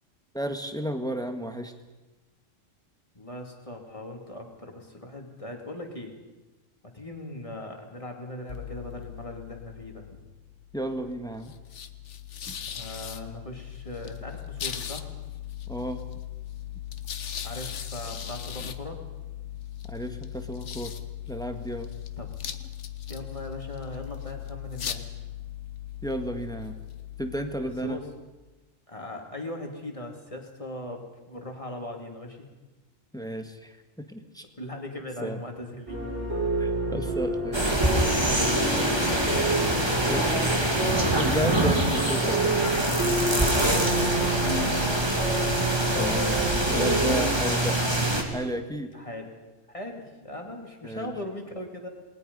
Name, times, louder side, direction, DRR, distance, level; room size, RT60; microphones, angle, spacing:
voice 1, 0.3-1.7 10.7-11.5 12.5-12.6 15.7-16.0 19.9-20.9 21.3-21.9 26.0-26.8 27.2-28.0 33.1-33.8 34.1-34.4 35.2-35.4 36.6-37.8 40.0-40.3 41.1-42.7 45.9-47.8 48.3-48.9 50.8-51.1, right 1 dB, 5° left, 6 dB, 1.6 m, -33 dB
voice 2, 3.1-6.1 6.8-10.2 12.7-15.1 17.4-19.0 22.2-22.3 23.1-25.0 27.8-28.0 28.9-32.5 34.6-36.0 38.6-40.2 43.7-44.9 48.9-49.3 49.7-51.9, left 1 dB, 25° left, 2 dB, 2.9 m, -39 dB
sound 1, 8.5-28.4, left 10 dB, 65° left, 1.3 m, -39 dB
sound 2, 35.9-47.4, right 2 dB, 55° right, 6.3 m, -29 dB
sound 3, 37.5-48.2, right 1 dB, 20° right, 2.5 m, -25 dB
28.0 x 20.0 x 5.5 m, 1.2 s
omnidirectional pair, 1.3 m